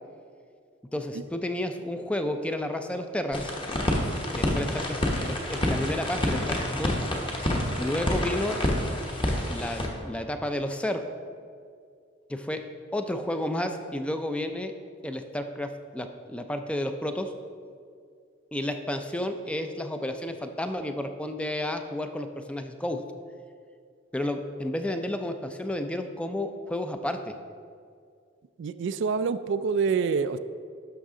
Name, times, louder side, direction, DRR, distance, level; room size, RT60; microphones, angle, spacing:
voice 1, 0.9-3.5 4.4-7.0 7.8-8.6 9.5-11.0 12.3-12.6 12.9-14.7 15.0-17.3 18.5-23.0 24.1-27.4, left 1 dB, 5° left, 7 dB, 0.4 m, -31 dB
sound 1, 3.3-9.9, left 1 dB, 25° left, 1.1 m, -28 dB
voice 2, 28.6-30.4, right 5 dB, 65° right, 12 dB, 0.3 m, -26 dB
11.5 x 5.9 x 3.7 m, 2.2 s
head